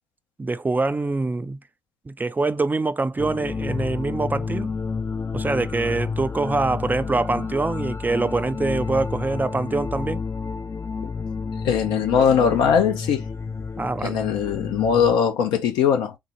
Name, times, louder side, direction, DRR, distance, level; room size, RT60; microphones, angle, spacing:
voice 1, 0.4-1.6 2.1-4.7 5.3-10.2 13.8-14.2, right 3 dB, 20° right, 0.4 m, -24 dB
sound 1, 3.2-15.2, left 5 dB, 35° left, 0.5 m, -30 dB
voice 2, 11.6-13.3 14.0-16.1, left 7 dB, 75° left, 0.8 m, -20 dB
3.6 x 2.2 x 2.9 m
hypercardioid pair, 40°, 8 cm